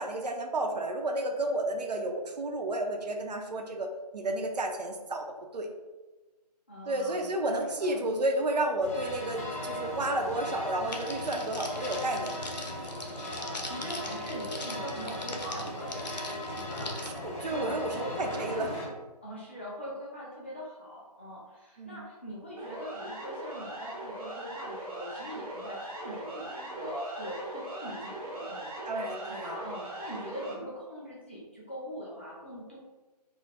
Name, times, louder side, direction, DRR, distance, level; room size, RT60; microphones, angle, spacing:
voice 1, 0.0-5.2 5.5-5.7 6.9-12.4 17.0-17.9 18.2-18.7 21.8-22.0 28.9-29.8, right 1 dB, 75° right, 4 dB, 0.4 m, -31 dB
voice 2, 6.7-8.0 13.2-16.2 16.5-18.7 19.2-28.9 29.3-32.8, equal, 20° left, -7 dB, 0.3 m, -42 dB
sound 1, 8.8-18.9, equal, 50° left, 0.7 m, -38 dB
Crackle, 10.9-17.1, left 2 dB, 90° left, 0.5 m, -42 dB
Siren, 22.6-30.5, right 1 dB, 60° right, 0.8 m, -40 dB
2.3 x 2.1 x 2.8 m, 1.2 s
figure-of-eight pair, 155°, 21 cm